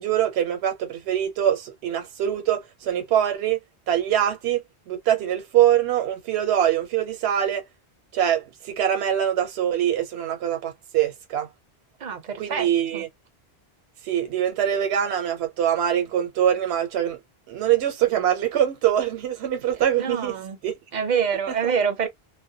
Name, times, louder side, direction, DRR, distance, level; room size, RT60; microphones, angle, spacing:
voice 1, 0.0-3.6 3.9-7.6 8.1-11.5 12.4-13.1 14.0-17.2 17.5-20.3 20.6-20.7 21.6-21.7, right 10 dB, 80° right, 0.9 m, -23 dB
voice 2, 12.0-13.0 19.9-20.6 20.9-22.1, right 7 dB, 50° right, 0.6 m, -26 dB
2.1 x 2.1 x 2.7 m
omnidirectional pair, 1.1 m